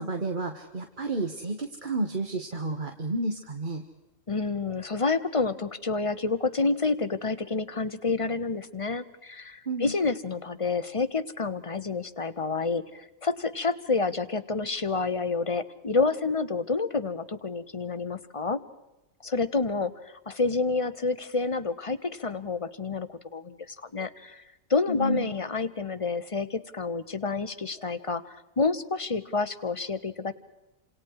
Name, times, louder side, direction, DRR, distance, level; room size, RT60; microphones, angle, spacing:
voice 1, 0.0-3.8 9.7-9.9 24.9-25.3, right 2 dB, 35° right, 5 dB, 1.7 m, -31 dB
voice 2, 4.3-18.6 19.2-24.4 24.7-30.3, left 4 dB, 25° left, 12 dB, 1.0 m, -29 dB
29.5 x 27.0 x 4.9 m, 0.99 s
omnidirectional pair, 1.5 m